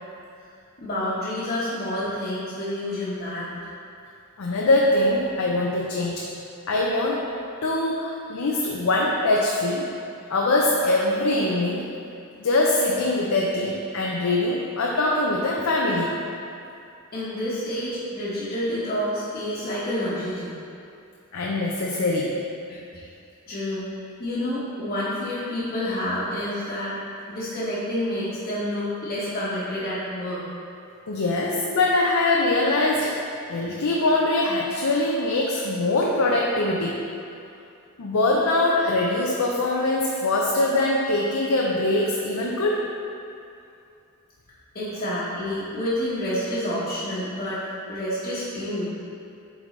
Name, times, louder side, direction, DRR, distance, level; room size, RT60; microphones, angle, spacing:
voice 1, 0.8-3.5 17.1-20.5 22.7-23.1 23.5-23.9 24.2-26.9 27.3-30.5 44.7-48.9, left 1 dB, 45° left, -13 dB, 1.2 m, -29 dB
voice 2, 4.4-6.3 6.7-7.2 7.6-9.8 10.3-11.9 12.4-16.1 21.3-22.3 31.1-37.0 38.0-42.9, left 2 dB, 70° left, -2 dB, 0.5 m, -23 dB
8.8 x 3.7 x 3.2 m, 2.6 s
head